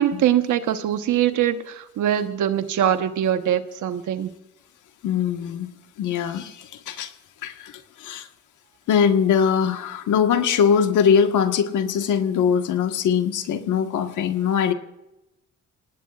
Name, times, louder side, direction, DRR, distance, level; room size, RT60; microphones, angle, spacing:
voice 1, 0.0-4.3, right 10 dB, 75° right, 8 dB, 1.2 m, -22 dB
voice 2, 5.0-5.7 6.0-7.1 7.4-8.3 8.9-14.7, left 7 dB, 80° left, 6 dB, 1.5 m, -21 dB
26.5 x 18.5 x 2.5 m, 0.97 s
cardioid pair, 90°, 30 cm